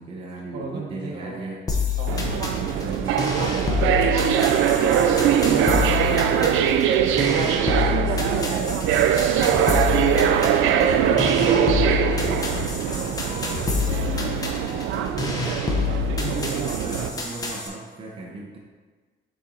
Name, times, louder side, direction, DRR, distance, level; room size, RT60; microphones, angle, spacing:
voice 1, 0.0-1.6 2.1-4.7 15.5-16.0 16.2-18.6, right 2 dB, 25° right, -2 dB, 0.7 m, -37 dB
voice 2, 0.5-1.5 2.0-2.2 4.9-10.5 11.1-14.2 16.0-16.6, right 3 dB, 60° right, 1 dB, 1.0 m, -37 dB
sound 1, 1.7-17.7, left 5 dB, 20° left, 0.8 m, -28 dB
sound 2, 2.1-17.1, right 9 dB, 80° right, 0.4 m, -22 dB
sound 3, 9.5-14.9, left 2 dB, 75° left, 1.3 m, -36 dB
6.8 x 4.2 x 3.8 m, 1.4 s
cardioid pair, 175°, 20 cm